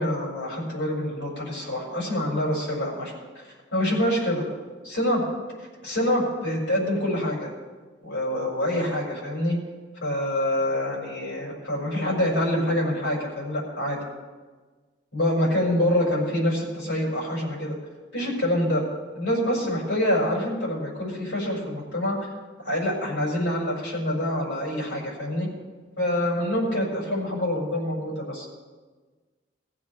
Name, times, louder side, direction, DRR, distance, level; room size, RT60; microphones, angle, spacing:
voice 1, 0.0-3.4 3.7-4.4 4.8-5.2 5.8-7.5 8.0-9.6 10.0-14.0 15.1-17.8 18.1-18.9 19.1-22.2 22.6-25.5 26.0-28.5, left 1 dB, 90° left, -5 dB, 5.8 m, -26 dB
21.5 x 15.0 x 3.3 m, 1.4 s
head